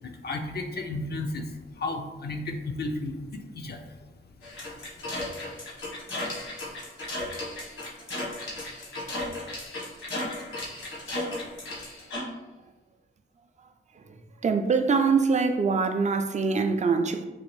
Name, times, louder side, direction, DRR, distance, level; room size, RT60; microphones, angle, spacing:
voice 1, 0.0-3.9, left 2 dB, 50° left, 4 dB, 0.4 m, -33 dB
sound 1, 4.4-12.2, left 1 dB, 85° left, 1.4 m, -35 dB
voice 2, 14.4-17.2, right 4 dB, 35° right, 7 dB, 0.4 m, -24 dB
4.0 x 2.5 x 3.1 m, 1.1 s
wide cardioid pair, 85°, 21 cm